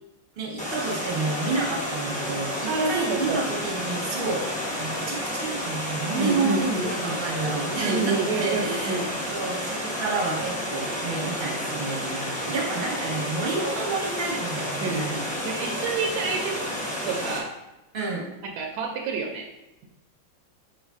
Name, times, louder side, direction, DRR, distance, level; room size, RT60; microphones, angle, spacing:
voice 1, 0.4-4.5 4.8-9.0 9.3-15.1 17.9-18.3, right 3 dB, 45° right, -2 dB, 0.7 m, -30 dB
Water, 0.6-17.4, equal, 10° left, 0.3 m, -31 dB
voice 2, 2.7-3.4 6.2-7.2 7.8-9.1 14.8-16.6 17.1-17.6 18.6-19.5, right 4 dB, 75° right, 1 dB, 1.0 m, -28 dB
4.7 x 3.1 x 3.5 m, 0.98 s
omnidirectional pair, 2.1 m